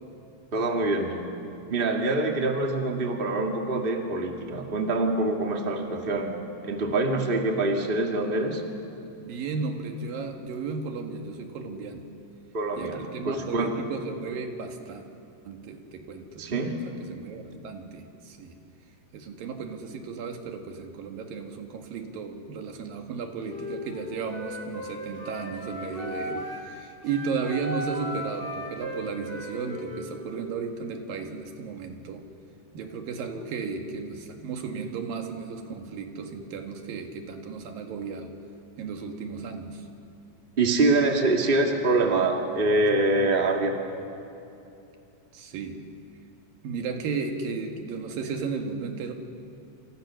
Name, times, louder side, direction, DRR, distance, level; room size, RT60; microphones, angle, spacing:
voice 1, 0.5-1.2 1.7-6.3 6.6-8.6 12.5-13.8 16.4-16.8 17.5-17.6 40.6-43.8, right 2 dB, 20° right, 2 dB, 1.9 m, -25 dB
voice 2, 9.2-12.1 12.8-15.0 15.5-18.6 19.1-32.2 32.7-38.3 38.8-39.9 45.3-45.8 46.6-49.1, right 5 dB, 85° right, 4 dB, 3.5 m, -34 dB
Wind instrument woodwind instrument, 23.4-26.7 27.0-30.4, equal, 15° left, 5.0 m, -37 dB
28.0 x 27.5 x 6.4 m, 2.7 s
omnidirectional pair, 3.9 m